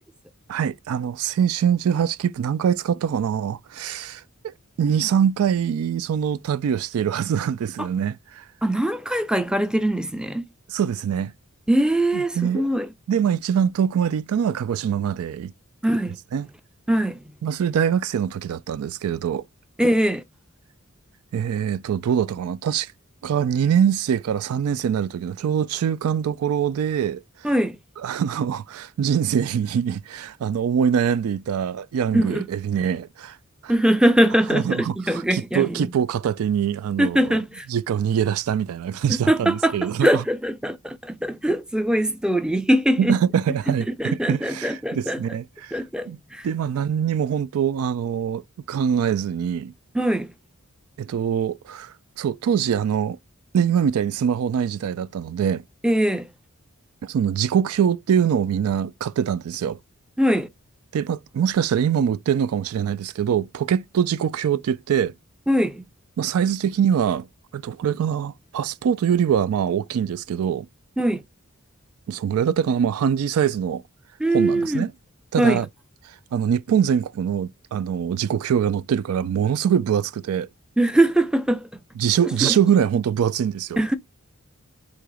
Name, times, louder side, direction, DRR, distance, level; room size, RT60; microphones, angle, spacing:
voice 1, 0.5-8.4 10.7-11.3 12.1-12.6 13.1-15.5 16.3-16.5 17.4-19.5 21.3-22.9 23.2-27.2 28.0-33.4 33.6-33.7 34.5-37.4 37.7-40.2 43.0-45.8 46.1-46.2 46.4-49.7 51.0-53.2 53.5-55.6 57.0-59.8 60.9-65.1 66.2-67.3 67.5-70.7 72.1-73.8 74.3-74.9 75.3-75.7 76.1-80.5 82.0-83.8, right 8 dB, 85° right, 0.3 m, -23 dB
voice 2, 8.6-10.5 11.7-12.9 15.8-16.2 16.9-17.2 19.8-20.2 27.4-27.8 32.1-32.4 33.7-35.9 37.0-37.7 39.1-43.2 44.0-45.2 45.7-46.5 49.9-50.3 55.8-56.3 60.2-60.5 65.5-65.8 71.0-71.2 74.2-74.9 75.4-75.6 80.8-81.7 82.4-82.6 83.8-84.0, right 1 dB, 5° right, 0.5 m, -22 dB
3.9 x 2.8 x 4.7 m
head